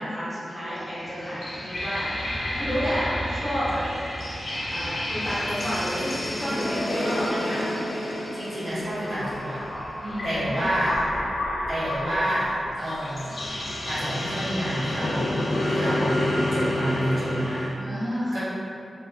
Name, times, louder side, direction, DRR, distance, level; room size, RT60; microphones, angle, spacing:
voice 1, 0.0-3.8 4.7-7.6 10.0-10.7 17.8-18.4, equal, 5° right, -11 dB, 0.6 m, -31 dB
sound 1, 0.8-17.7, left 1 dB, 50° left, 0.4 m, -29 dB
voice 2, 8.3-9.6 10.2-11.0 11.7-13.3 13.8-15.4 15.7-17.7 18.3-18.4, equal, 65° right, -12 dB, 1.2 m, -28 dB
2.9 x 2.5 x 2.4 m, 2.6 s
wide cardioid pair, 175°, 0 cm